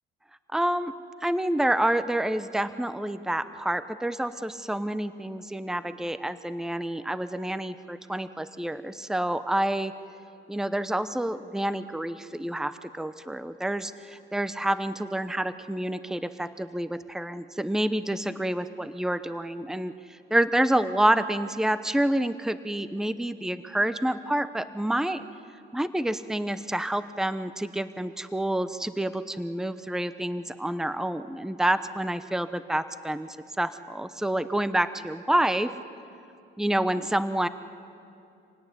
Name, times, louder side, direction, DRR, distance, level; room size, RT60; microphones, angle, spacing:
voice 1, 0.5-0.9 1.2-9.9 10.5-25.2 25.7-35.7 36.6-37.5, right 1 dB, 5° right, 12 dB, 0.9 m, -28 dB
26.5 x 17.5 x 9.9 m, 2.7 s
cardioid pair, 90°, 20 cm